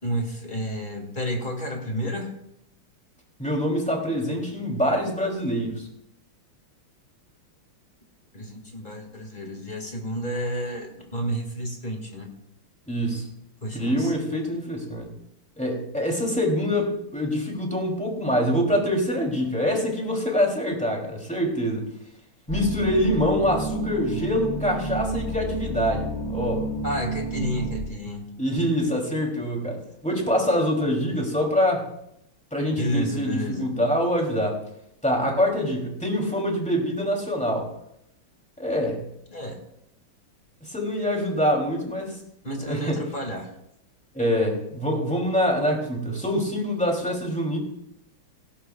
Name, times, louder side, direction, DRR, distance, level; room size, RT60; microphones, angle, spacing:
voice 1, 0.0-2.3 8.3-12.3 13.6-14.1 26.8-28.3 32.7-33.7 39.3-39.6 42.4-43.5, equal, 25° left, 2 dB, 2.1 m, -31 dB
voice 2, 3.4-5.9 12.9-13.3 13.7-15.1 15.6-21.8 22.5-26.6 28.4-31.9 32.5-34.6 35.0-37.7 38.6-39.0 40.6-42.2 42.6-43.0 44.1-47.6, equal, 5° left, 0 dB, 2.9 m, -25 dB
sound 1, 22.5-27.8, right 2 dB, 85° left, 6.1 m, -30 dB
17.0 x 17.0 x 2.4 m, 0.79 s
omnidirectional pair, 2.2 m